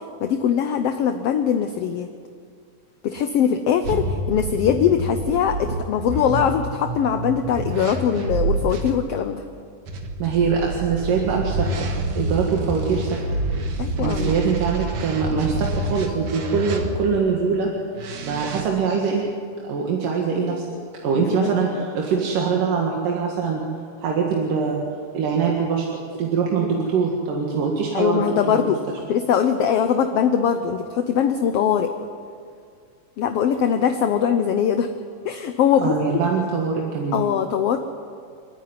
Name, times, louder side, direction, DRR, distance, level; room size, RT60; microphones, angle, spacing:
voice 1, 0.2-2.1 3.0-9.4 13.8-14.3 21.2-21.5 26.6-26.9 27.9-28.8 29.1-31.9 33.2-34.9 35.2-36.0 37.1-37.8, left 8 dB, 70° left, 7 dB, 1.4 m, -21 dB
sound 1, 3.8-8.9 9.9-17.2 17.9-18.6, right 2 dB, 70° right, 3.1 m, -28 dB
voice 2, 10.2-11.9 12.2-13.2 14.0-17.7 18.2-19.2 19.6-20.6 21.0-23.6 24.0-24.8 25.1-25.9 26.2-28.7 35.8-37.2, right 5 dB, 90° right, -1 dB, 3.4 m, -23 dB
29.5 x 10.0 x 9.7 m, 2.2 s
omnidirectional pair, 3.7 m